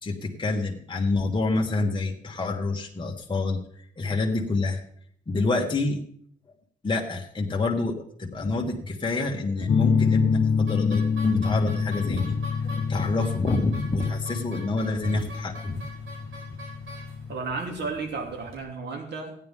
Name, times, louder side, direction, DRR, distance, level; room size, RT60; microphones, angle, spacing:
voice 1, 0.0-3.6 4.0-4.8 5.3-6.0 6.8-12.4 12.6-15.8, left 3 dB, 25° left, -1 dB, 1.6 m, -27 dB
sound 1, 9.7-17.3, left 5 dB, 50° left, 0.8 m, -26 dB
sound 2, 10.7-18.6, equal, 75° right, 3.7 m, -44 dB
voice 2, 17.3-19.3, right 4 dB, 60° right, 3 dB, 2.8 m, -33 dB
15.5 x 9.7 x 3.7 m, 0.63 s
cardioid pair, 90°, 20 cm